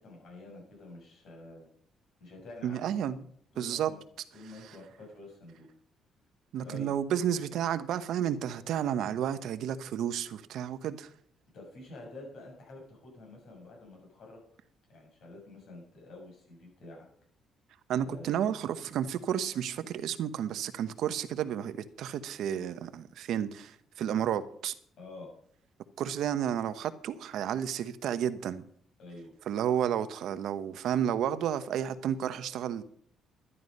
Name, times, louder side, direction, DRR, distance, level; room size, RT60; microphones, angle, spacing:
voice 1, 0.0-1.7 2.2-2.9 3.5-4.0 4.3-5.7 6.6-7.0 11.5-14.4 14.9-17.1 18.0-18.3 25.0-25.3 29.0-29.3, left 2 dB, 65° left, 7.4 m, -48 dB
voice 2, 2.6-3.2 3.6-3.9 6.5-11.1 17.9-24.7 26.0-28.6 29.5-32.8, right 9 dB, 75° right, 0.9 m, -31 dB
11.5 x 11.0 x 5.3 m
cardioid pair, 115°, 0 cm